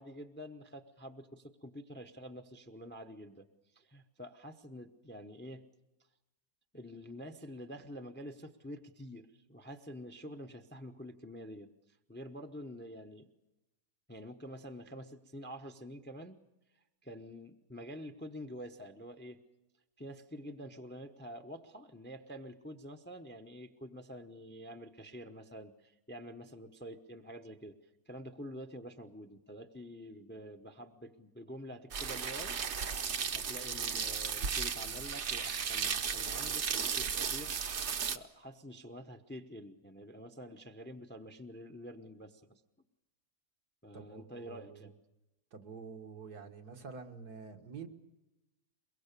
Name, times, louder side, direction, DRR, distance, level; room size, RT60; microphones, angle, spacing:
voice 1, 0.0-3.5 3.7-5.6 6.7-11.7 12.1-13.3 14.1-16.4 17.0-19.4 20.0-27.8 28.1-32.6 33.3-37.6 38.1-42.6 43.8-44.9, equal, 10° left, 8 dB, 0.6 m, -47 dB
sound 1, 31.9-38.2, right 6 dB, 50° right, 1.1 m, -35 dB
voice 2, 43.9-44.9 45.5-47.9, right 5 dB, 80° right, 5 dB, 2.1 m, -48 dB
23.0 x 22.5 x 6.8 m, 0.98 s
omnidirectional pair, 1.6 m